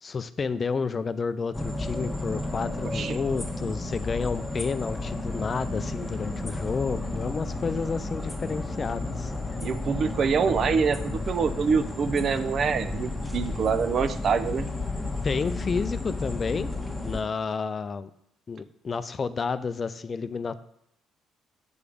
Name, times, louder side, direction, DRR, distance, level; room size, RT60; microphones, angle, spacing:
voice 1, 0.0-9.3 15.2-16.7 17.0-18.1 18.5-20.6, left 5 dB, 35° left, 14 dB, 0.4 m, -30 dB
sound 1, 1.5-17.2, left 2 dB, 10° left, 1.4 m, -32 dB
voice 2, 9.6-14.7, right 6 dB, 50° right, 11 dB, 0.6 m, -25 dB
7.3 x 4.9 x 5.0 m, 0.73 s
supercardioid pair, 70°, 0 cm